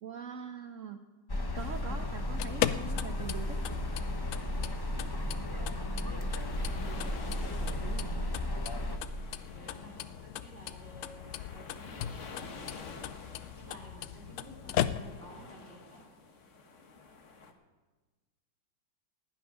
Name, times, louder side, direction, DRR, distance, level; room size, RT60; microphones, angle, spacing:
voice 1, 0.0-1.0 1.5-3.9 7.6-8.3, right 7 dB, 70° right, 8 dB, 0.8 m, -43 dB
sound 1, 1.3-9.0, left 1 dB, 30° left, 0.4 m, -34 dB
sound 2, 1.5-17.5, left 4 dB, 45° left, 1.4 m, -51 dB
sound 3, 2.2-15.4, left 11 dB, 85° left, 0.7 m, -38 dB
voice 2, 5.7-7.2 9.5-12.9 13.5-16.0, right 1 dB, 40° right, -3 dB, 3.1 m, -52 dB
16.0 x 6.1 x 9.8 m, 1.3 s
omnidirectional pair, 1.9 m